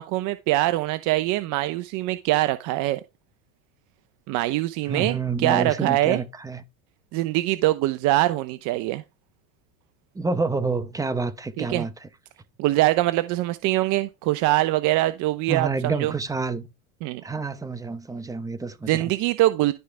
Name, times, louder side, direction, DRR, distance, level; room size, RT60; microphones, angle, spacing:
voice 1, 0.0-3.0 4.3-5.2 5.4-6.2 7.1-9.0 11.6-11.8 12.6-16.1 17.0-17.2 18.9-19.7, right 17 dB, 45° right, 0.7 m, -23 dB
voice 2, 4.9-6.6 10.1-12.1 15.5-16.7 17.2-19.1, right 4 dB, 10° right, 0.8 m, -28 dB
12.0 x 4.9 x 3.4 m
supercardioid pair, 115°, 41 cm